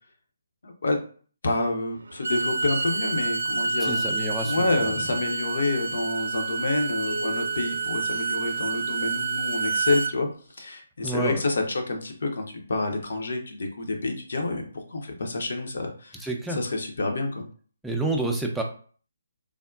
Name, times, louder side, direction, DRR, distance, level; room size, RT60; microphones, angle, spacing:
voice 1, 0.6-1.0 1.4-4.0 4.4-16.2 16.5-17.4, left 2 dB, 60° left, 3 dB, 0.7 m, -28 dB
Bowed string instrument, 2.1-10.1, right 4 dB, 70° right, 0.3 m, -28 dB
voice 2, 3.8-5.1 11.0-11.4 16.2-16.6 17.8-18.6, right 2 dB, 5° right, 0 dB, 0.4 m, -29 dB
sound 1, 7.1-9.0, right 2 dB, 40° right, 0.6 m, -40 dB
3.5 x 2.1 x 2.3 m, 0.43 s
figure-of-eight pair, 140°, 0 cm